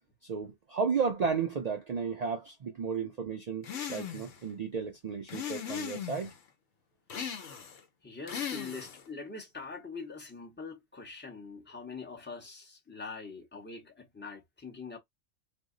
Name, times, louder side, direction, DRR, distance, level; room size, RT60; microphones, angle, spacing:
voice 1, 0.3-6.3, right 5 dB, 70° right, 0.3 m, -33 dB
sound 1, 3.6-4.4 5.3-6.3 7.1-7.8 8.3-9.1, left 8 dB, 70° left, 1.0 m, -38 dB
voice 2, 8.0-15.0, left 4 dB, 10° left, 0.7 m, -43 dB
2.6 x 2.0 x 3.7 m
omnidirectional pair, 1.3 m